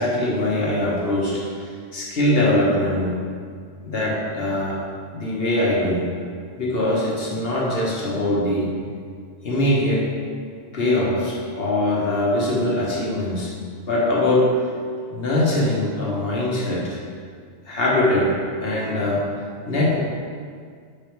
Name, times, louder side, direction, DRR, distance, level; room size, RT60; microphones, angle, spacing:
voice 1, 0.0-3.2 3.8-4.8 5.1-6.1 6.6-8.7 9.4-10.1 10.7-13.5 13.9-14.6 15.1-17.0 17.7-19.2 19.7-20.0, left 1 dB, 50° left, -4 dB, 1.5 m, -22 dB
5.7 x 5.1 x 4.6 m, 2.1 s
omnidirectional pair, 1.2 m